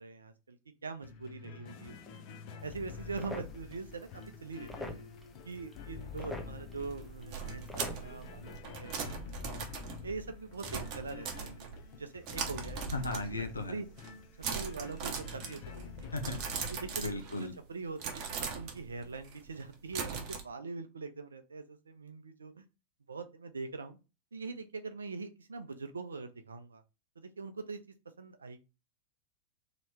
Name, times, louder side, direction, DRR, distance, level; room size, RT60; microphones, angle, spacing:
voice 1, 0.0-2.2 2.6-5.0 5.4-9.6 10.0-11.7 12.0-12.8 13.3-13.9 14.5-16.3 16.7-17.0 17.4-22.6 23.1-24.0 24.3-26.8 27.2-27.8 28.2-28.6, right 4 dB, 75° right, 9 dB, 0.5 m, -43 dB
sound 1, 1.0-17.2, left 6 dB, 40° left, 0.6 m, -48 dB
sound 2, 2.6-8.6, left 1 dB, 5° left, 0.7 m, -47 dB
sound 3, 6.8-11.9 12.3-13.6 13.9-14.2 14.4-17.6 18.0-20.4, right 6 dB, 40° right, 0.8 m, -40 dB
voice 2, 12.9-13.8 16.1-16.4 17.0-17.5, left 2 dB, 80° left, 6 dB, 0.7 m, -36 dB
3.2 x 3.0 x 4.1 m, 0.29 s
figure-of-eight pair, 90°, 0 cm